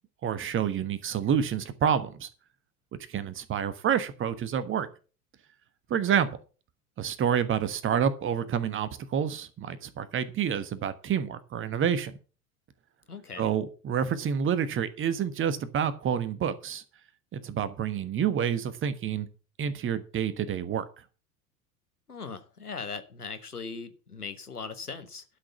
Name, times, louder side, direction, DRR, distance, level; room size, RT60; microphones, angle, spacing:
voice 1, 0.2-2.3 3.1-4.9 5.9-6.3 7.0-12.2 13.4-16.8 17.3-19.3 19.6-20.8, right 8 dB, 25° right, 13 dB, 1.3 m, -28 dB
voice 2, 13.1-13.5 22.1-25.2, left 4 dB, 85° left, 10 dB, 1.3 m, -39 dB
11.5 x 6.5 x 6.9 m, 0.37 s
figure-of-eight pair, 80°, 44 cm